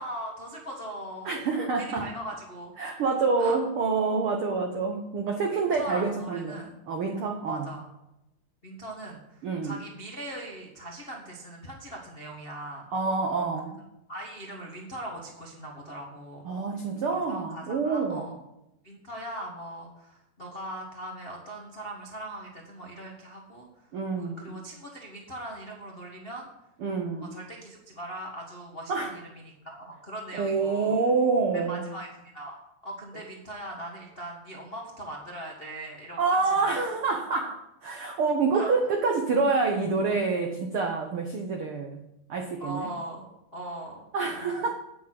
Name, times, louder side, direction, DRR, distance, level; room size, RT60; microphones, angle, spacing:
voice 1, 0.0-1.3 1.8-2.7 3.4-3.6 5.3-6.7 7.5-7.9 8.6-12.9 14.1-16.5 17.1-18.3 18.8-23.9 24.2-26.5 27.2-30.9 31.5-32.6 32.8-36.2 36.5-36.9 38.5-38.7 42.6-44.4, right 1 dB, 50° left, -1 dB, 0.6 m, -40 dB
voice 2, 1.2-2.1 2.8-7.7 9.4-9.8 12.9-13.8 16.4-18.3 23.9-24.5 26.8-27.3 28.9-29.1 30.4-31.8 36.2-42.0 42.3-42.9 44.1-44.8, right 4 dB, 80° right, 3 dB, 1.2 m, -27 dB
9.2 x 8.8 x 5.9 m, 0.88 s
omnidirectional pair, 4.0 m